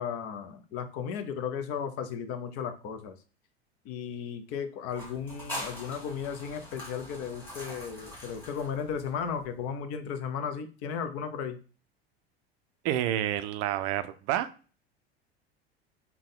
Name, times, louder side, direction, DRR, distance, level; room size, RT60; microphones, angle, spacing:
voice 1, 0.0-3.1 3.8-11.6, left 7 dB, 50° left, 9 dB, 0.6 m, -35 dB
sound 1, 4.9-9.5, left 1 dB, 5° left, 1.5 m, -43 dB
voice 2, 12.8-14.5, right 12 dB, 50° right, 11 dB, 0.4 m, -29 dB
3.6 x 2.2 x 3.7 m, 0.37 s
hypercardioid pair, 80°, 31 cm